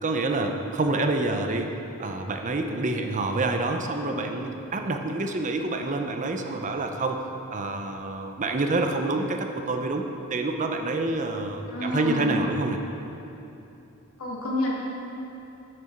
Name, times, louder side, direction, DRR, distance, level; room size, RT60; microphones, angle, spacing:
voice 1, 0.0-1.7 2.0-7.2 7.5-12.8, right 2 dB, 35° right, 4 dB, 0.6 m, -27 dB
voice 2, 11.7-12.3 14.2-14.7, left 2 dB, 75° left, -4 dB, 2.1 m, -28 dB
8.6 x 6.8 x 5.8 m, 3.0 s
head